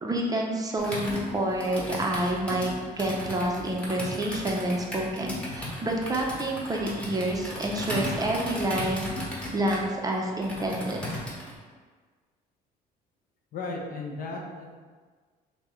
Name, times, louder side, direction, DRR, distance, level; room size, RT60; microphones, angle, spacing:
voice 1, 0.0-9.1 9.5-11.0, right 1 dB, 20° right, 0 dB, 0.5 m, -28 dB
Computer keyboard, 0.8-11.5, left 1 dB, 5° left, 1.0 m, -36 dB
voice 2, 13.5-14.8, left 3 dB, 60° left, 0 dB, 0.7 m, -35 dB
5.6 x 2.1 x 3.1 m, 1.5 s
cardioid pair, 110°, 17 cm